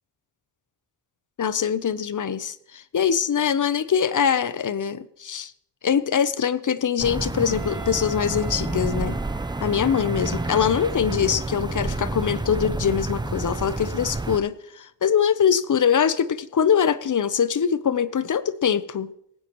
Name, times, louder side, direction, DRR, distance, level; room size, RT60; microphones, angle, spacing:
voice 1, 1.4-5.5 5.8-9.2 9.6-19.1, left 7 dB, 40° left, 15 dB, 0.7 m, -23 dB
sound 1, 7.0-14.4, right 2 dB, 10° right, 0.5 m, -29 dB
Wind instrument woodwind instrument, 7.5-11.3, right 8 dB, 40° right, 3.5 m, -43 dB
18.0 x 15.5 x 3.0 m, 0.71 s
cardioid pair, 95°, 46 cm